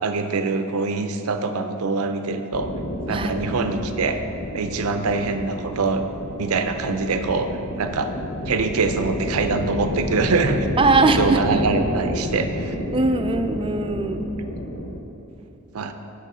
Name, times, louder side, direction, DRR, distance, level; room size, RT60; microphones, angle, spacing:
voice 1, 0.0-2.7 3.1-4.2 4.5-6.0 6.4-7.5 7.8-8.1 8.5-10.7 11.2-12.8 15.7-15.9, right 4 dB, 85° right, 7 dB, 0.6 m, -24 dB
sound 1, 2.5-15.0, left 1 dB, 65° left, 0.8 m, -30 dB
voice 2, 10.8-11.6 12.9-14.3, right 3 dB, 25° right, 7 dB, 0.4 m, -20 dB
7.6 x 6.7 x 4.9 m, 2.8 s
head